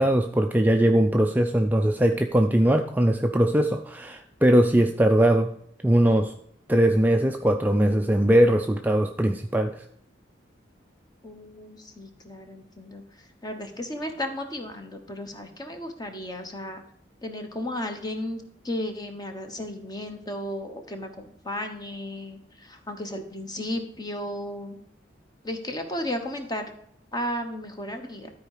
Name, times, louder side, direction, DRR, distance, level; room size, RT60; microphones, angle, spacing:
voice 1, 0.0-5.5 5.8-6.3 6.7-9.8, right 1 dB, 10° right, 4 dB, 0.4 m, -21 dB
voice 2, 11.2-13.0 13.4-16.8 17.2-24.8 25.4-26.7 27.1-28.3, left 1 dB, 20° left, 5 dB, 1.1 m, -34 dB
12.5 x 4.6 x 4.9 m, 0.69 s
head